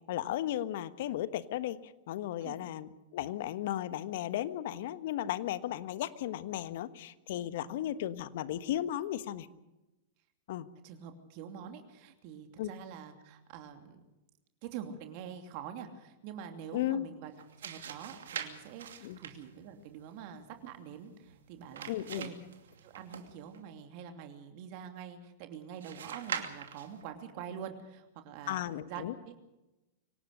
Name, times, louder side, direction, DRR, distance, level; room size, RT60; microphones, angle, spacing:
voice 1, 0.1-9.5 10.5-10.7 12.6-12.7 16.7-17.0 19.0-19.2 21.9-22.3 28.5-29.1, left 12 dB, 60° left, 13 dB, 1.3 m, -35 dB
voice 2, 10.8-14.0 14.6-17.3 17.6-22.4 22.8-28.6 28.9-29.3, right 8 dB, 50° right, 5 dB, 2.8 m, -45 dB
sound 1, 17.3-23.6 25.8-27.0, right 8 dB, 75° right, 2.7 m, -44 dB
25.0 x 18.0 x 6.6 m, 0.98 s
hypercardioid pair, 100°, 0 cm